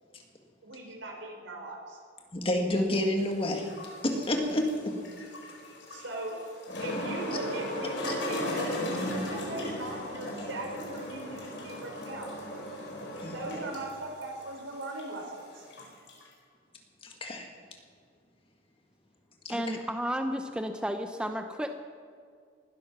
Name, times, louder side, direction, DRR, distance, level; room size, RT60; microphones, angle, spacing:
voice 1, 0.6-2.0 5.9-6.4 6.8-12.3 13.3-15.7, right 2 dB, 90° right, 2 dB, 3.9 m, -40 dB
voice 2, 2.3-3.7 4.0-4.9 8.1-8.2 13.2-13.4 17.0-17.5 19.4-19.8, left 1 dB, 30° left, 3 dB, 1.9 m, -29 dB
sound 1, 3.2-16.3, equal, 75° left, 4.6 m, -37 dB
voice 3, 19.5-21.7, equal, 5° right, 6 dB, 0.6 m, -32 dB
19.5 x 12.0 x 5.9 m, 2.1 s
head